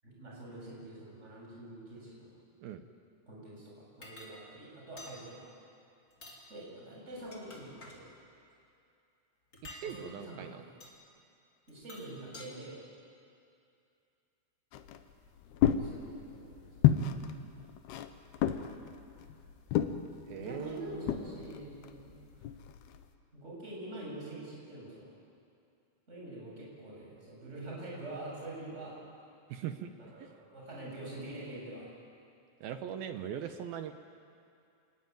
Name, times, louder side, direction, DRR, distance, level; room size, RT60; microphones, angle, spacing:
voice 1, 0.0-2.3 3.3-5.5 6.5-8.1 9.8-10.7 11.7-12.8 15.7-16.9 20.3-22.2 23.3-25.1 26.1-29.0 30.1-31.9, right 1 dB, 15° right, -4 dB, 7.3 m, -45 dB
sound 1, 4.0-4.3 5.0-5.2 6.1-6.4 7.1-8.0 9.5-9.9 10.8-11.0 11.7-12.5, left 2 dB, 25° left, 2.8 m, -49 dB
voice 2, 9.7-10.6 20.3-21.0 29.5-29.9 30.2-30.3 32.6-33.9, right 9 dB, 75° right, 8 dB, 2.3 m, -40 dB
sound 2, 14.7-23.1, left 10 dB, 75° left, 2.8 m, -32 dB
28.0 x 19.5 x 9.4 m, 2.6 s
omnidirectional pair, 5.3 m